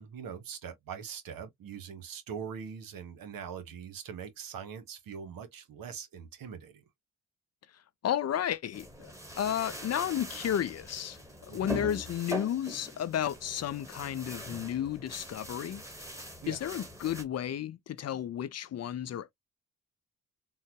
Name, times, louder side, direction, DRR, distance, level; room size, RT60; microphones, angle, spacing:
voice 1, 0.0-6.8 11.5-11.7 16.4-16.6, right 7 dB, 75° right, 1.0 m, -42 dB
voice 2, 8.0-9.1 9.4-15.8 16.5-19.3, left 10 dB, 50° left, 0.5 m, -33 dB
sound 1, 8.7-17.2, equal, 10° right, 1.4 m, -42 dB
3.7 x 2.1 x 2.9 m
supercardioid pair, 50°, 35 cm